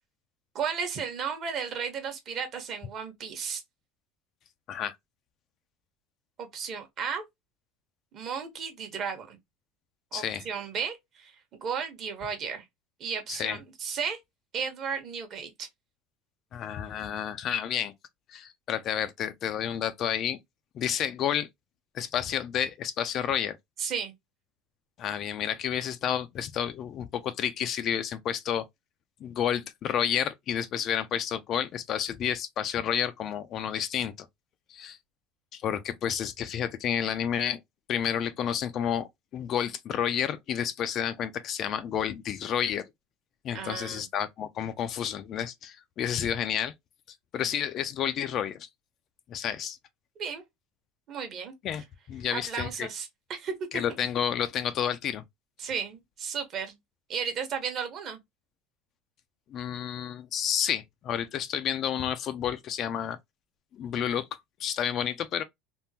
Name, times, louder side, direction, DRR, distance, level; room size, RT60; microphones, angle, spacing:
voice 1, 0.5-3.6 6.4-7.2 8.1-9.4 10.1-12.6 13.0-14.2 14.5-15.7 23.8-24.1 43.5-44.1 50.2-50.4 51.1-51.5 52.3-53.8 55.6-56.7 57.1-58.2, right 6 dB, 40° right, 1.0 m, -34 dB
voice 2, 10.1-10.5 13.3-13.6 16.5-17.9 18.3-20.4 20.7-21.5 21.9-23.6 25.0-28.6 29.2-34.3 34.7-35.0 35.5-37.6 37.9-42.8 43.4-46.7 47.3-48.7 49.3-49.8 51.6-52.9 53.7-55.2 59.5-63.2 63.7-64.3 64.6-65.4, left 9 dB, 40° left, 0.3 m, -30 dB
3.5 x 2.1 x 2.7 m
cardioid pair, 145°, 0 cm